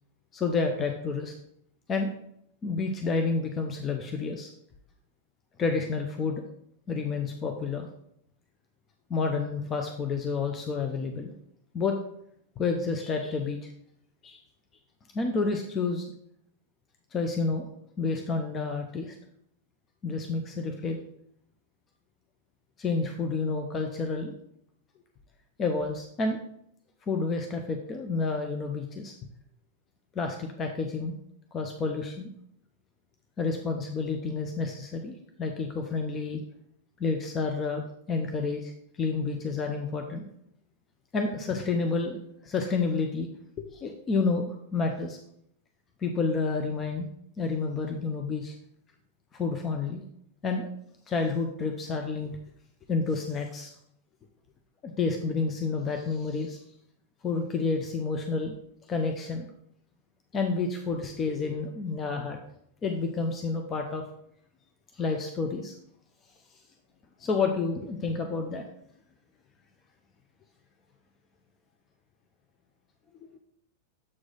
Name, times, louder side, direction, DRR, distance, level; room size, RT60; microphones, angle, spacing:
voice 1, 0.3-1.3 1.9-2.1 2.6-4.5 5.6-6.4 6.9-7.9 9.1-11.3 11.7-11.9 12.6-13.7 14.2-14.4 15.1-16.1 17.1-17.7 18.0-19.2 20.0-21.0 22.8-24.3 25.6-26.4 27.1-29.2 30.1-31.1 31.5-32.3 33.4-35.1 35.4-36.4 37.0-38.7 39.0-40.3 41.1-42.2 42.4-43.3 43.6-45.2 46.0-47.1 47.4-48.5 49.3-50.0 50.4-50.7 51.1-52.3 52.9-53.7 54.8-56.6 57.2-58.5 58.9-59.5 60.3-62.4 62.8-64.0 64.9-65.7 67.2-68.6, left 4 dB, 25° left, 4 dB, 0.7 m, -29 dB
7.4 x 4.7 x 3.9 m, 0.73 s
figure-of-eight pair, 90°, 0 cm